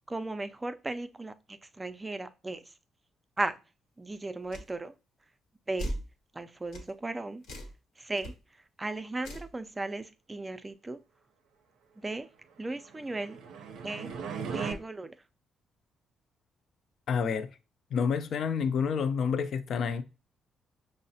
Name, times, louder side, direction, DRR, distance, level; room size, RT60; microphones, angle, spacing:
voice 1, 0.1-2.6 3.4-3.5 4.0-4.9 5.7-5.9 6.4-7.4 8.0-8.3 8.8-11.0 12.0-12.3 12.6-13.4 13.8-14.1 14.5-15.1, right 2 dB, 20° right, 0.4 m, -36 dB
sound 1, 4.5-4.7 5.8-6.1 6.7-6.9 7.4-7.8 8.2-8.3 9.2-9.5, equal, 85° left, 1.0 m, -37 dB
sound 2, 12.8-14.7, right 6 dB, 80° right, 0.5 m, -38 dB
voice 2, 17.1-17.5 17.9-20.0, left 6 dB, 65° left, 0.4 m, -28 dB
5.5 x 2.0 x 2.6 m
cardioid pair, 90°, 0 cm